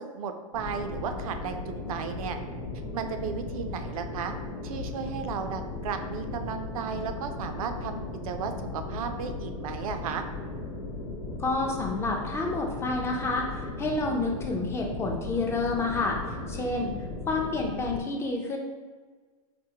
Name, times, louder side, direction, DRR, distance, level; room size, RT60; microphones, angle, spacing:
voice 1, 0.0-2.4 2.9-4.3 4.6-10.2, right 6 dB, 75° right, 7 dB, 0.5 m, -34 dB
sound 1, 0.5-18.0, left 2 dB, 80° left, 1.0 m, -37 dB
voice 2, 11.4-16.2 16.5-16.9 17.3-18.6, left 3 dB, 15° left, 1 dB, 0.4 m, -29 dB
5.1 x 2.1 x 2.8 m, 1.4 s
supercardioid pair, 130°, 18 cm